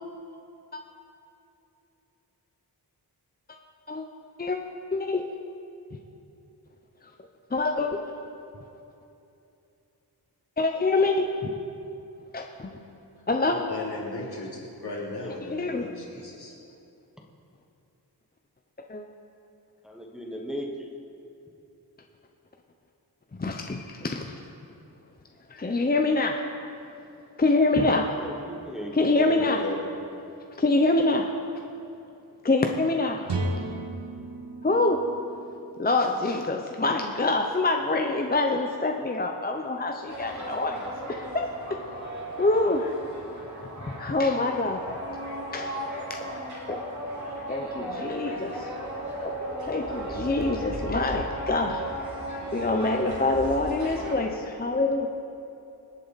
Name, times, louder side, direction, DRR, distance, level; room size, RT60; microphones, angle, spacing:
voice 1, 4.9-5.2 7.5-8.0 10.6-11.5 12.3-12.8 13.3-13.6 15.5-15.9 18.9-19.0 23.4-24.3 25.5-26.4 27.4-28.2 28.9-29.6 30.6-31.2 32.4-33.4 34.6-35.0 35.8-41.5 42.4-43.1 43.9-44.9 45.5-46.8 47.4-48.9 49.2-51.8 52.5-55.1, left 2 dB, 25° left, 3 dB, 0.7 m, -25 dB
voice 2, 13.5-14.5 14.8-16.5 29.1-29.8, left 3 dB, 70° left, -4 dB, 3.3 m, -35 dB
voice 3, 19.8-20.9 28.1-29.0, equal, ahead, -1 dB, 1.2 m, -37 dB
sound 1, 33.3-37.0, right 2 dB, 90° right, 1.4 m, -35 dB
sound 2, 40.1-54.2, right 1 dB, 45° right, 3.1 m, -36 dB
25.0 x 8.5 x 4.1 m, 2.8 s
wide cardioid pair, 140°, 40 cm